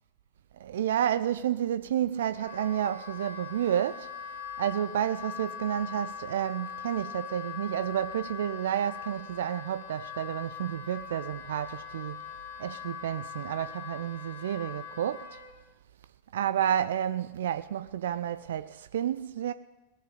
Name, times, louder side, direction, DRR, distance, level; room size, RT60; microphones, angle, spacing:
voice 1, 0.6-4.1 4.6-12.3 12.6-15.4 16.3-19.5, right 10 dB, 60° right, 0.4 m, -30 dB
Wind instrument woodwind instrument, 2.3-15.5, left 8 dB, 75° left, 2.4 m, -42 dB
18.0 x 7.2 x 9.8 m
figure-of-eight pair, 90°, 0 cm